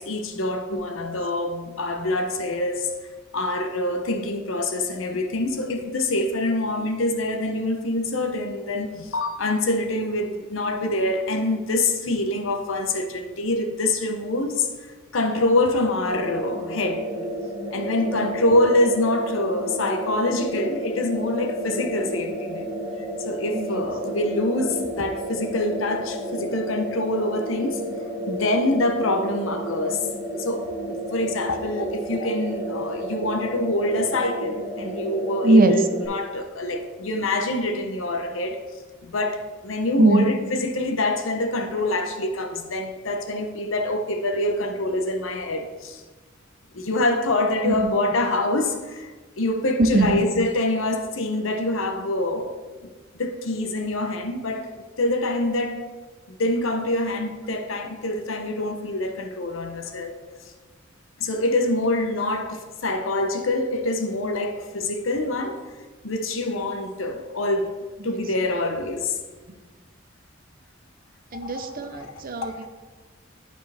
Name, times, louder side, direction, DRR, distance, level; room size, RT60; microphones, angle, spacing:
voice 1, 0.0-2.9 3.3-14.7 15.1-17.3 17.7-22.7 23.2-27.8 28.3-30.1 30.3-35.8 36.1-38.6 39.0-46.0 46.7-49.1 49.4-52.6 52.8-52.9 53.2-54.7 55.0-55.9 56.3-60.2 61.2-65.6 66.0-67.7 68.0-69.2 71.3-71.7 72.4-72.7, left 2 dB, 75° left, 0.8 m, -25 dB
sound 1, 16.1-36.1, equal, 15° right, 1.5 m, -31 dB
voice 2, 18.0-18.3 23.5-23.9 35.4-35.9 40.0-40.3 47.6-47.9 49.8-50.2 68.0-68.2 71.3-72.7, right 2 dB, 45° right, 0.7 m, -21 dB
11.5 x 4.5 x 3.4 m
head